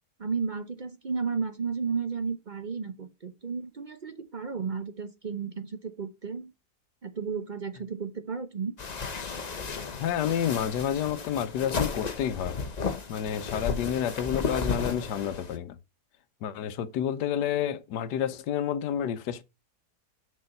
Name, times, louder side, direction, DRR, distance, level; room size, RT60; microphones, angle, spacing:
voice 1, 0.2-6.5 7.0-8.7, right 5 dB, 45° right, 0.6 m, -33 dB
sound 1, 8.8-15.6, left 5 dB, 35° left, 0.7 m, -34 dB
voice 2, 10.0-12.6 13.1-15.8 16.4-19.4, left 9 dB, 85° left, 1.4 m, -29 dB
6.4 x 5.1 x 5.2 m
omnidirectional pair, 1.8 m